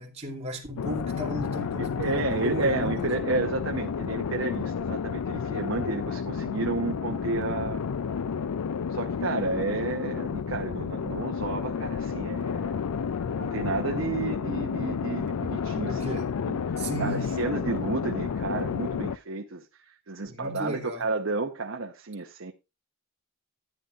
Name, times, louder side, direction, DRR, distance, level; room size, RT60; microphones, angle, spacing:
voice 1, 0.0-3.1 15.9-16.3 16.8-17.3 20.3-21.1, right 1 dB, 30° right, 2.5 m, -35 dB
sound 1, 0.8-19.2, left 6 dB, 85° left, 0.4 m, -31 dB
voice 2, 1.8-7.8 8.9-12.8 13.3-22.5, right 3 dB, 60° right, 0.9 m, -31 dB
13.5 x 9.7 x 2.5 m
head